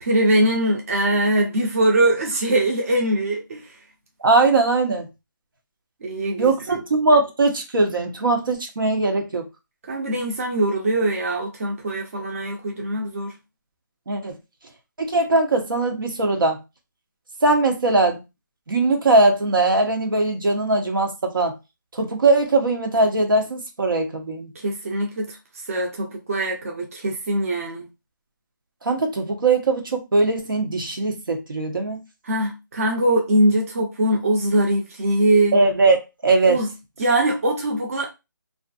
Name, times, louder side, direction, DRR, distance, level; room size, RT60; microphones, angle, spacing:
voice 1, 0.0-3.7 6.0-6.8 9.9-13.3 24.6-25.4 25.7-27.9 32.2-35.6 36.5-36.7 37.0-38.1, right 1 dB, 45° right, 0.6 m, -22 dB
voice 2, 4.2-5.1 6.4-9.4 14.1-14.4 15.0-16.6 17.4-18.2 18.7-21.5 21.9-24.5 28.8-32.0 35.5-36.0 36.2-36.6, right 3 dB, 80° right, 0.8 m, -20 dB
2.5 x 2.5 x 2.4 m
hypercardioid pair, 165°, 11 cm